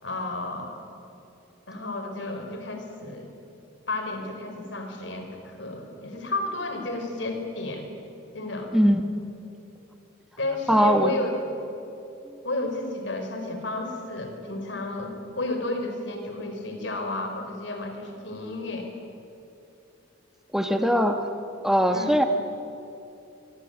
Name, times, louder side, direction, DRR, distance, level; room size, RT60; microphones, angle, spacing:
voice 1, 0.0-0.8 1.7-3.3 3.9-7.9 8.3-8.7 10.4-11.4 12.4-18.9 21.9-22.2, left 2 dB, 70° left, 4 dB, 4.7 m, -32 dB
voice 2, 10.7-11.1 20.5-21.3 21.6-22.2, equal, ahead, 5 dB, 1.2 m, -20 dB
24.0 x 23.5 x 9.0 m, 2.8 s
head